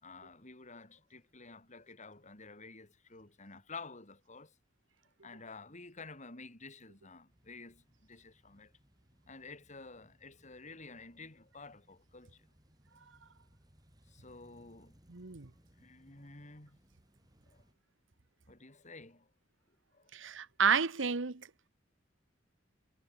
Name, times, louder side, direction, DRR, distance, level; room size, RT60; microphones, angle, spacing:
voice 1, 0.0-4.5 5.2-8.7 9.3-12.5 14.1-15.0 15.8-16.8 17.5-17.6 18.5-19.3 19.9-20.1, left 3 dB, 40° left, 4.7 m, -51 dB
sound 1, 7.3-17.7, equal, 20° right, 5.3 m, -67 dB
voice 2, 15.1-15.5 20.1-21.5, right 6 dB, 75° right, 1.2 m, -31 dB
head